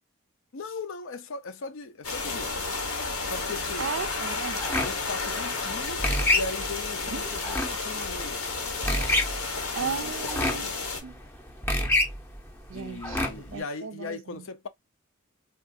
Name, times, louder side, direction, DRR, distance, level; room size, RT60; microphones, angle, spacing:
voice 1, 0.5-2.7 3.3-3.9 4.8-8.4 9.8-10.0 10.5-10.8 12.7-14.7, left 3 dB, 70° left, 0.5 m, -38 dB
sound 1, 2.0-11.0, left 4 dB, 85° left, 1.0 m, -32 dB
voice 2, 3.8-4.6 7.1-7.5 9.7-10.7 11.0-11.2 12.7-14.4, right 7 dB, 65° right, 0.4 m, -36 dB
sound 2, 4.6-13.6, left 1 dB, 10° left, 0.6 m, -29 dB
3.5 x 2.4 x 2.5 m
head